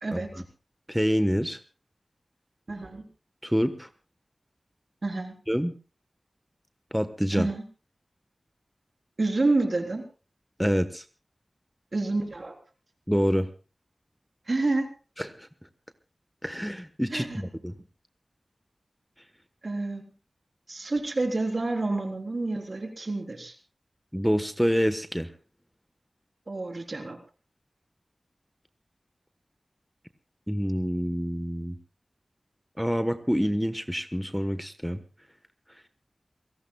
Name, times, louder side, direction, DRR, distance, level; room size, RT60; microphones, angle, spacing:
voice 1, 0.1-0.4 0.9-1.6 3.4-3.9 5.5-5.7 6.9-7.5 10.6-11.0 13.1-13.5 15.2-15.5 16.4-17.8 24.1-25.3 30.5-31.8 32.8-35.0, equal, ahead, 10 dB, 1.2 m, -27 dB
voice 2, 2.7-3.0 5.0-5.3 7.3-7.6 9.2-10.0 11.9-12.5 14.5-14.9 17.1-17.4 19.6-20.1 20.7-23.5 26.5-27.2, right 2 dB, 60° right, 4 dB, 3.8 m, -28 dB
28.0 x 18.0 x 2.3 m, 0.35 s
wide cardioid pair, 60°, 0 cm